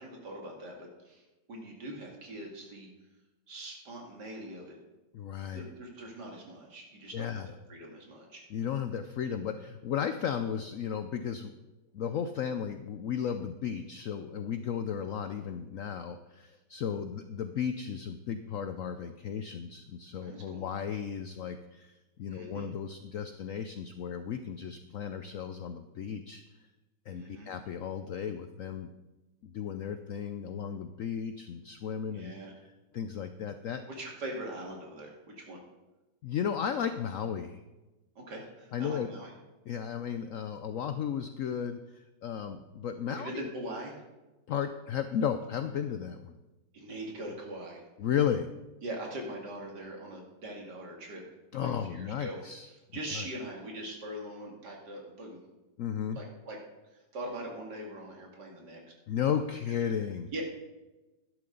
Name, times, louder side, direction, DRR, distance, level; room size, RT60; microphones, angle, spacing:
voice 1, 0.0-2.9 3.5-4.8 5.5-8.4 20.2-20.6 22.3-22.7 27.1-27.5 32.1-32.5 33.9-35.6 38.2-39.3 43.1-44.0 46.7-47.8 48.8-51.2 51.6-52.4 52.6-55.4 56.1-56.6 56.9-58.8 60.3-60.4, right 1 dB, 65° right, 0 dB, 2.8 m, -42 dB
voice 2, 5.1-5.6 7.1-7.5 8.5-11.5 11.9-21.9 22.2-26.4 27.1-28.9 29.4-32.3 32.9-33.8 36.2-37.6 38.7-39.1 39.7-43.3 44.5-46.3 48.0-48.5 51.5-52.7 53.1-53.3 55.8-56.2 59.1-60.3, left 8 dB, 75° left, 9 dB, 0.7 m, -34 dB
12.5 x 11.0 x 3.9 m, 1.1 s
omnidirectional pair, 2.0 m